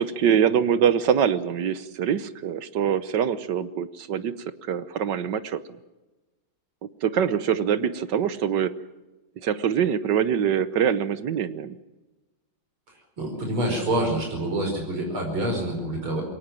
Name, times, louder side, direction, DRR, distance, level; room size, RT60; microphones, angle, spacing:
voice 1, 0.0-4.3 4.7-5.6 7.0-8.7 9.4-11.8, right 8 dB, 65° right, 14 dB, 1.5 m, -24 dB
voice 2, 13.2-16.2, right 1 dB, 90° right, 1 dB, 5.9 m, -26 dB
23.0 x 18.5 x 7.6 m, 1.1 s
omnidirectional pair, 2.2 m